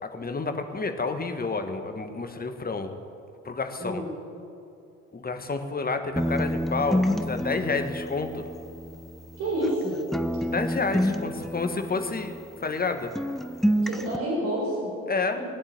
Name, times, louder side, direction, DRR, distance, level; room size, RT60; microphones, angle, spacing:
voice 1, 0.0-3.0 3.4-4.0 5.1-8.5 10.5-12.3 12.6-13.1 15.1-15.4, left 4 dB, 25° left, 7 dB, 1.7 m, -29 dB
voice 2, 3.8-4.1 9.4-10.0 13.8-14.9 15.4-15.5, right 1 dB, 65° right, -4 dB, 4.6 m, -28 dB
sound 1, 6.2-9.8 10.1-12.9 13.1-14.2, equal, ahead, 0.8 m, -29 dB
20.0 x 8.6 x 7.8 m, 2.7 s
figure-of-eight pair, 50°, 37 cm